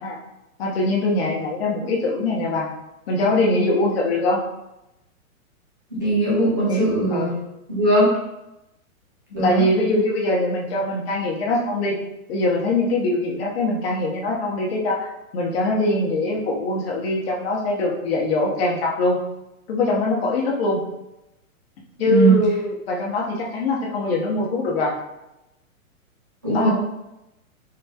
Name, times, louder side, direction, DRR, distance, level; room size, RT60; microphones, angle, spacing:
voice 1, 0.6-2.7 3.1-4.4 6.7-7.3 9.4-12.0 12.3-19.2 19.7-20.8 22.0-24.9 26.5-26.7, left 2 dB, 45° left, -2 dB, 0.9 m, -22 dB
voice 2, 6.0-7.3 7.7-8.1 9.3-9.6 22.0-22.4 26.4-26.7, right 2 dB, 15° right, -8 dB, 0.3 m, -19 dB
3.8 x 2.9 x 2.2 m, 0.91 s
hypercardioid pair, 160°, 43 cm